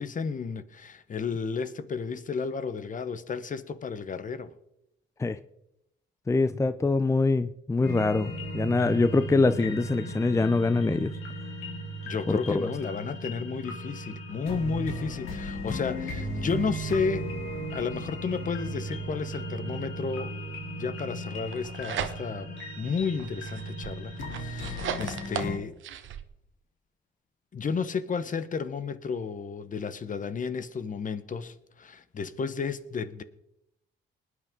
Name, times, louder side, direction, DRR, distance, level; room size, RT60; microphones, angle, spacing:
voice 1, 0.0-4.5 12.1-17.3 17.7-20.4 20.8-25.7 27.5-33.2, left 5 dB, 40° left, 1.0 m, -32 dB
voice 2, 6.3-11.1 12.3-12.7, left 3 dB, 15° left, 0.5 m, -24 dB
sound 1, 7.8-25.6, right 1 dB, 80° left, 3.5 m, -36 dB
sound 2, 21.3-22.5 23.0-26.2, right 9 dB, 75° right, 1.1 m, -37 dB
20.0 x 9.6 x 3.7 m
cardioid pair, 90°, 20 cm